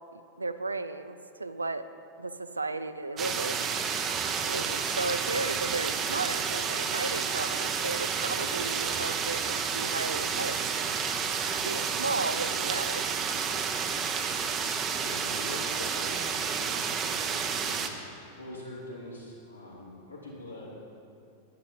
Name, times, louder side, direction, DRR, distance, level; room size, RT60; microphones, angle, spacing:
voice 1, 0.1-1.9 2.2-3.7 4.4-10.8 11.6-13.0, right 3 dB, 80° right, 11 dB, 0.5 m, -34 dB
sound 1, 3.2-17.9, right 6 dB, 30° right, 0.8 m, -30 dB
voice 2, 15.0-18.1 18.4-20.7, left 1 dB, 85° left, -6 dB, 3.0 m, -43 dB
10.5 x 10.0 x 5.5 m, 2.6 s
figure-of-eight pair, 90°, 0 cm